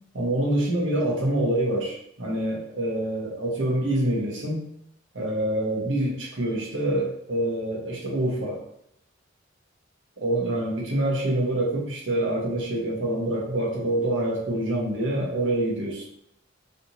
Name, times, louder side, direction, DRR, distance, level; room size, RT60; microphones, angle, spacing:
voice 1, 0.1-4.6 5.1-8.6 10.2-16.0, right 1 dB, 80° right, -3 dB, 1.0 m, -26 dB
3.2 x 2.8 x 2.8 m, 0.76 s
head